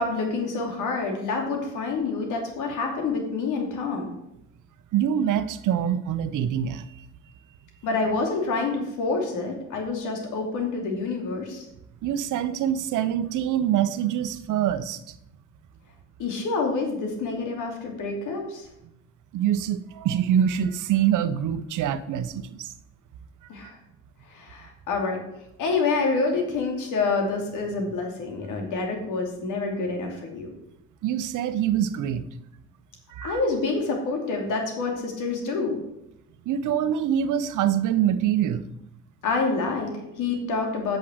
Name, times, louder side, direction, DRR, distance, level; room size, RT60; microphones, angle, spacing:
voice 1, 0.0-4.1 7.8-11.7 16.2-18.7 23.5-23.8 24.3-25.2 25.6-30.5 33.2-35.8 39.2-41.0, left 3 dB, 85° left, 2 dB, 2.8 m, -27 dB
voice 2, 4.9-7.0 12.0-15.1 19.3-22.7 31.0-32.2 33.1-33.4 36.5-38.7, right 10 dB, 80° right, 12 dB, 0.8 m, -25 dB
8.6 x 6.4 x 7.7 m, 0.83 s
cardioid pair, 90°, 30 cm